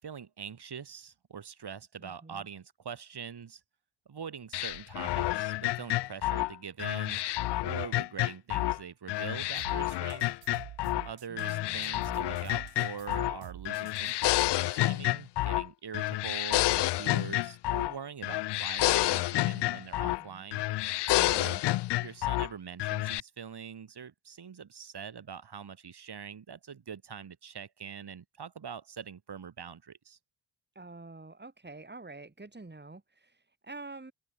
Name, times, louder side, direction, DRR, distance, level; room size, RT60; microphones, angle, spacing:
voice 1, 0.0-3.6 4.1-7.2 7.6-10.4 11.0-20.6 21.1-21.6 22.0-30.2, right 7 dB, 60° right, 6.3 m, -43 dB
voice 2, 2.0-2.5 11.3-12.0 20.2-20.5 21.2-21.6 30.7-34.1, right 3 dB, 25° right, 4.9 m, -47 dB
sound 1, 4.5-8.8 9.1-11.1 11.4-13.4 13.6-15.7 15.9-18.0 18.2-20.2 20.5-22.5 22.8-23.2, left 17 dB, 65° left, 0.5 m, -29 dB
sound 2, 9.6-14.5, right 15 dB, 90° right, 2.4 m, -48 dB
open air
supercardioid pair, 50°, 45 cm